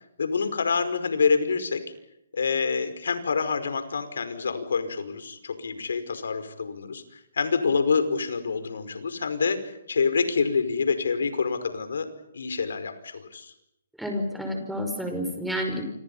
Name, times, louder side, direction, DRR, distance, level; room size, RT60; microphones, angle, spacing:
voice 1, 0.2-1.8 2.3-12.1 12.3-13.5, left 5 dB, 80° left, 10 dB, 5.1 m, -27 dB
voice 2, 14.0-15.9, equal, ahead, 4 dB, 5.7 m, -30 dB
28.5 x 26.0 x 5.7 m, 0.81 s
hypercardioid pair, 155°, 0 cm